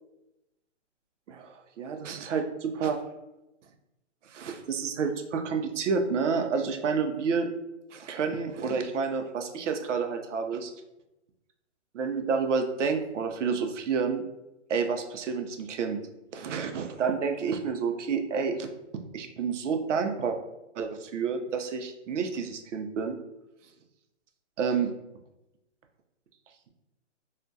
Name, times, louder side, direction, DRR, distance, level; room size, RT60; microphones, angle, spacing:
voice 1, 1.3-3.0 4.3-7.5 7.9-10.7 11.9-14.2 14.7-16.0 16.3-20.4 20.8-23.2 24.6-24.9, right 5 dB, 80° right, 5 dB, 0.5 m, -29 dB
2.3 x 2.1 x 2.6 m, 0.93 s
hypercardioid pair, 160°, 36 cm